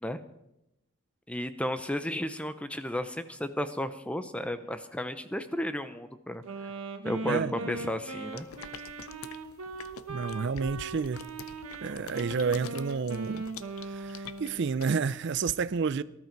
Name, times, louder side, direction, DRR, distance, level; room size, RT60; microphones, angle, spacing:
voice 1, 1.3-6.4 7.0-8.5, left 1 dB, 5° left, 0.6 m, -33 dB
sound 1, 2.8-4.1 4.5-6.0 6.5-6.8 7.3-7.5 8.0-8.8 9.4-9.5 9.8-10.5 11.1-11.3 11.6-12.3, left 1 dB, 65° left, 4.1 m, -60 dB
Wind instrument woodwind instrument, 6.4-14.6, right 3 dB, 90° right, 1.6 m, -39 dB
voice 2, 7.3-7.7 10.1-11.3 11.8-13.4 13.9-16.0, right 5 dB, 55° right, 0.4 m, -30 dB
sound 2, 8.3-15.5, left 7 dB, 80° left, 0.7 m, -47 dB
19.0 x 12.0 x 4.6 m
head